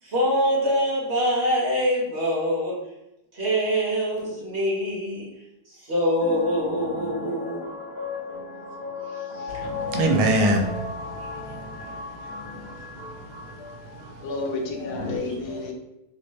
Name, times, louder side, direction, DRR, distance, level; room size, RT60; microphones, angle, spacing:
voice 1, 0.0-2.8 3.3-5.2 5.8-7.6 9.3-9.5 11.2-11.6, equal, 35° right, -6 dB, 1.3 m, -24 dB
sound 1, 6.2-15.2, left 3 dB, 40° left, 1.0 m, -35 dB
voice 2, 9.5-11.6 11.9-12.0 12.5-12.8 14.0-14.1, right 1 dB, 80° right, 3 dB, 1.6 m, -25 dB
voice 3, 14.2-15.7, left 3 dB, 75° left, 2 dB, 1.5 m, -31 dB
4.4 x 3.1 x 3.2 m, 0.89 s
omnidirectional pair, 2.4 m